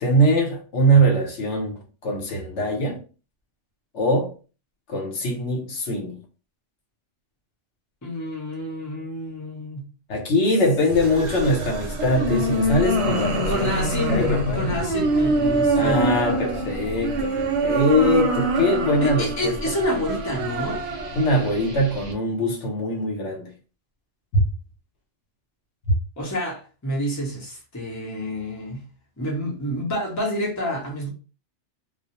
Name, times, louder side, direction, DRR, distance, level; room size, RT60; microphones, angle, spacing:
voice 1, 0.0-3.0 3.9-4.3 4.9-6.2 10.1-14.7 15.7-19.7 21.1-23.5 24.3-24.5 25.9-26.0, equal, 75° left, 1.0 m, -22 dB
voice 2, 8.0-9.8 13.5-16.2 19.0-20.8 26.2-28.8 29.2-31.1, equal, 20° left, 0.6 m, -28 dB
sound 1, 10.9-22.1, right 1 dB, 70° right, 0.9 m, -25 dB
2.3 x 2.0 x 2.8 m
omnidirectional pair, 1.2 m